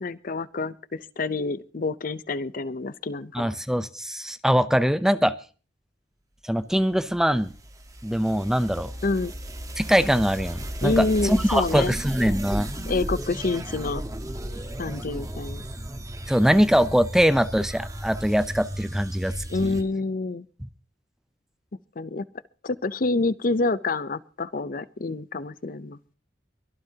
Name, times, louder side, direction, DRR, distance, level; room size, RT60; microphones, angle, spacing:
voice 1, 0.0-3.5 9.0-9.3 10.8-11.9 12.9-14.0 14.8-15.7 19.5-20.4 22.0-22.2 22.6-26.0, left 3 dB, 50° left, 16 dB, 0.6 m, -27 dB
voice 2, 3.3-5.4 6.4-7.5 8.0-8.9 9.8-12.7 14.9-15.0 16.3-19.8, equal, 5° right, 13 dB, 0.6 m, -22 dB
sound 1, 7.0-19.8, right 1 dB, 20° right, 1.3 m, -35 dB
23.5 x 13.5 x 2.8 m, 0.37 s
head